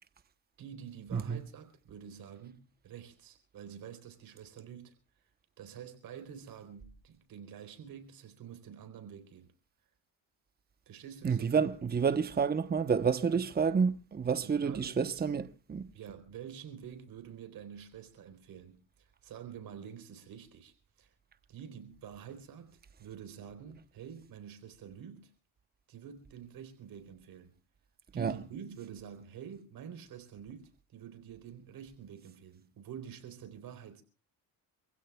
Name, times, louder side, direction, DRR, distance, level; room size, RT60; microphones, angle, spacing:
voice 1, 0.6-4.9 5.6-9.5 10.9-11.5 13.3-13.4 14.4-15.2 15.9-21.1 21.5-25.3 25.9-27.6 28.1-34.0, right 8 dB, 70° right, 3.9 m, -48 dB
voice 2, 11.2-15.4 15.7-15.9 28.2-28.3, right 6 dB, 25° right, 1.0 m, -29 dB
27.5 x 16.0 x 2.3 m
cardioid pair, 90°, 36 cm